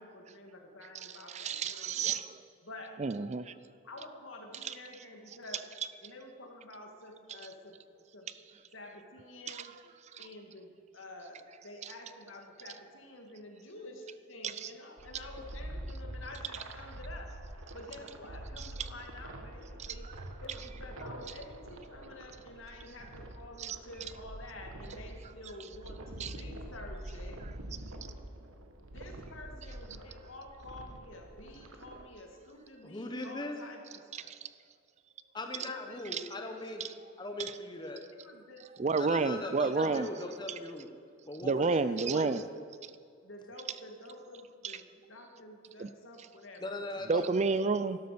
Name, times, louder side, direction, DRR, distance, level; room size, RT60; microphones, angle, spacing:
voice 1, 0.0-2.2 2.6-2.9 3.8-5.6 6.0-7.8 8.1-8.3 8.7-9.8 10.2-20.1 20.4-27.4 28.9-34.3 35.6-36.0 36.4-36.5 38.1-40.0 41.6-42.0 43.2-46.8 47.1-47.2, left 1 dB, 70° left, 2 dB, 2.2 m, -49 dB
voice 2, 1.3-2.4 3.0-3.5 9.5-9.6 14.6-14.7 23.6-23.8 26.2-26.3 34.3-34.4 36.1-36.2 38.8-40.1 41.4-42.4 44.6-44.7 45.8-45.9 47.1-48.0, right 4 dB, 35° right, 14 dB, 0.4 m, -30 dB
sound 1, 15.0-32.1, right 1 dB, 75° right, 1.4 m, -46 dB
voice 3, 32.8-33.6 35.3-36.8 37.2-38.0 39.0-40.9 41.3-41.7 42.0-42.3 46.6-47.3, left 2 dB, 20° left, 4 dB, 1.1 m, -39 dB
12.0 x 12.0 x 6.8 m, 2.2 s
head